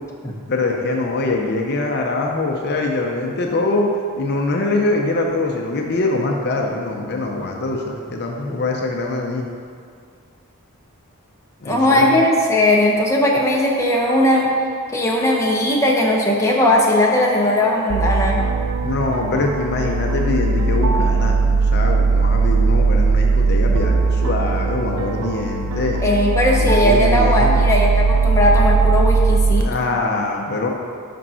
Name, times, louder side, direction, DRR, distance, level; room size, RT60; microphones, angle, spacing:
voice 1, 0.5-3.9 4.2-9.4 11.6-12.2 18.8-26.0 26.5-27.6 29.6-30.7, left 2 dB, 50° left, 1 dB, 0.6 m, -23 dB
voice 2, 11.6-14.5 14.9-18.4 26.0-29.7, left 1 dB, 15° left, -2 dB, 0.7 m, -18 dB
sound 1, 17.9-29.6, right 4 dB, 70° right, 0.4 m, -18 dB
5.4 x 5.1 x 5.5 m, 2.2 s
head